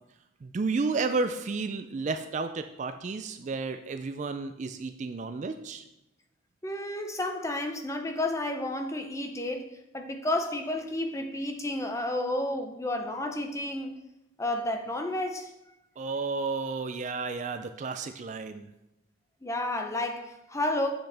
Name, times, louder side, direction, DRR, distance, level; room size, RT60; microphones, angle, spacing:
voice 1, 0.4-5.8 16.0-18.7, right 4 dB, 35° right, 9 dB, 0.3 m, -32 dB
voice 2, 6.6-9.7 9.9-14.0 14.4-15.5 19.4-20.9, left 1 dB, 15° left, 4 dB, 0.6 m, -31 dB
7.8 x 6.4 x 3.4 m, 0.91 s
head